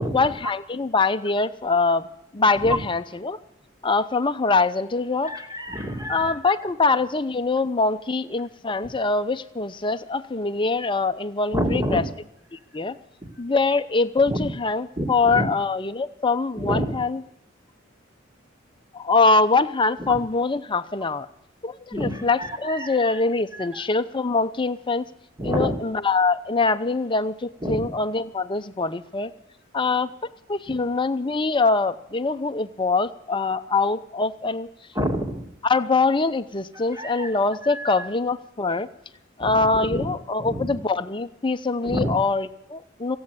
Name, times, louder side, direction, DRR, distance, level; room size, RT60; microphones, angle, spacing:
voice 1, 0.1-2.1 2.3-3.4 3.8-5.3 6.1-12.0 12.5-13.0 13.4-17.2 18.9-21.3 21.6-25.0 25.4-29.3 29.7-30.1 30.5-34.7 35.6-38.9 39.4-43.2, left 3 dB, 25° left, 9 dB, 0.7 m, -23 dB
voice 2, 5.2-6.3 11.5-12.0 14.3-14.5 15.0-15.5 16.6-17.0 20.0-20.2 21.9-23.0 23.5-23.8 25.4-25.8 27.6-27.9 30.7-30.8 34.9-35.5 36.9-37.3 37.6-38.1 39.4-40.1 40.4-40.7 41.8-42.1, equal, 20° right, 3 dB, 2.6 m, -28 dB
16.5 x 8.7 x 9.7 m, 0.80 s
head